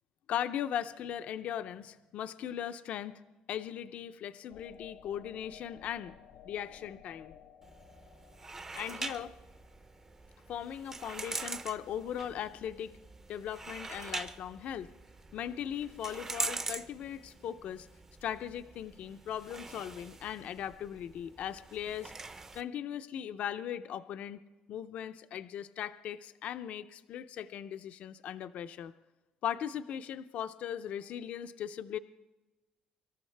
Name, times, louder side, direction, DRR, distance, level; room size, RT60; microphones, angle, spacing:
voice 1, 0.3-3.2 3.5-6.2 6.4-7.3 8.7-9.3 10.5-12.9 13.3-14.9 15.3-17.9 18.2-22.1 22.5-24.4 24.7-28.9 29.4-32.0, left 10 dB, 55° left, 12 dB, 0.5 m, -38 dB
sound 1, 4.5-11.1, left 8 dB, 75° left, 0.9 m, -57 dB
sound 2, 7.6-22.6, right 3 dB, 20° right, 0.6 m, -43 dB
25.0 x 13.5 x 3.3 m, 1.1 s
cardioid pair, 165°, 3 cm